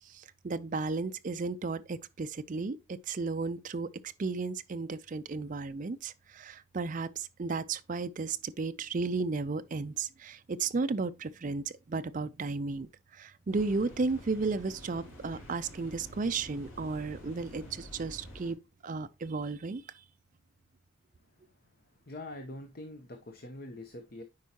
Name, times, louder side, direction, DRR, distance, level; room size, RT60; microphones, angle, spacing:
voice 1, 0.0-2.8 3.1-3.9 4.2-18.6 18.8-19.8, right 4 dB, 35° right, 0.4 m, -34 dB
sound 1, 13.5-18.5, equal, 85° left, 3.3 m, -49 dB
voice 2, 21.9-24.2, left 1 dB, 45° left, 0.8 m, -44 dB
9.4 x 4.6 x 2.8 m
head